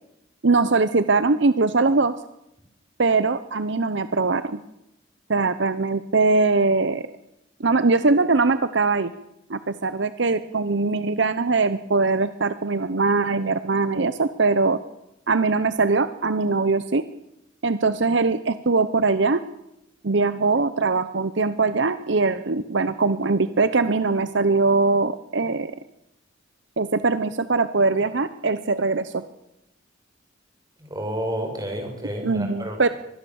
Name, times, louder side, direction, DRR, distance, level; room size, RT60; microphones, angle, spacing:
voice 1, 0.4-2.1 3.0-4.6 5.3-7.0 7.6-9.1 9.5-14.8 15.3-17.0 17.6-19.4 20.0-25.7 26.8-29.2 32.2-32.9, right 3 dB, 70° right, 12 dB, 0.8 m, -21 dB
voice 2, 30.8-32.9, equal, 20° right, 3 dB, 6.1 m, -30 dB
24.0 x 20.5 x 7.2 m, 0.86 s
head